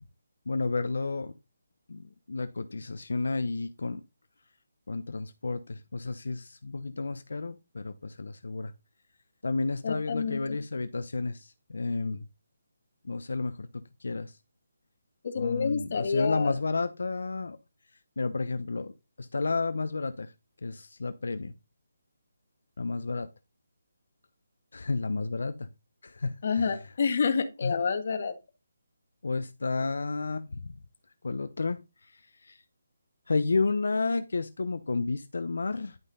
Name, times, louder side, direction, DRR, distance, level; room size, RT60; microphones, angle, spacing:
voice 1, 0.5-1.3 1.9-4.0 4.9-8.7 9.4-12.2 13.0-13.7 14.0-14.3 15.4-17.6 18.2-20.3 20.6-21.5 22.8-23.3 24.7-25.7 26.0-26.7 27.6-27.8 29.2-30.7 31.2-31.8 32.1-32.6 33.3-36.0, left 3 dB, 75° left, 11 dB, 0.9 m, -31 dB
voice 2, 9.8-10.6 15.2-16.6 26.4-28.4, left 5 dB, 45° left, 8 dB, 1.7 m, -28 dB
11.0 x 5.6 x 4.0 m, 0.25 s
hypercardioid pair, 170°, 0 cm